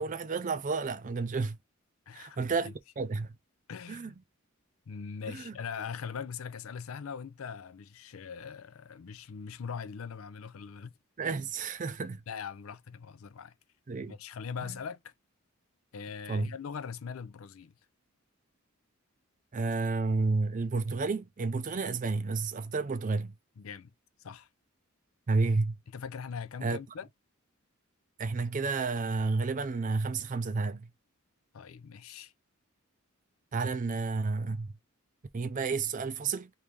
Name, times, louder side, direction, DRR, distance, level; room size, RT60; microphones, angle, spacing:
voice 1, 0.0-1.6 2.1-3.3 3.9-4.1 5.3-5.5 11.2-12.2 13.9-14.2 16.3-16.5 19.5-23.3 25.3-25.8 26.6-26.8 28.2-30.9 33.5-34.7 35.3-36.5, right 4 dB, 35° right, 0.5 m, -31 dB
voice 2, 2.1-2.4 2.6-2.7 3.7-4.2 4.9-10.9 12.3-13.5 14.1-15.1 15.9-17.7 23.6-23.9 24.2-24.5 25.9-27.1 31.5-32.3, left 6 dB, 75° left, 0.5 m, -41 dB
3.2 x 2.7 x 3.4 m
head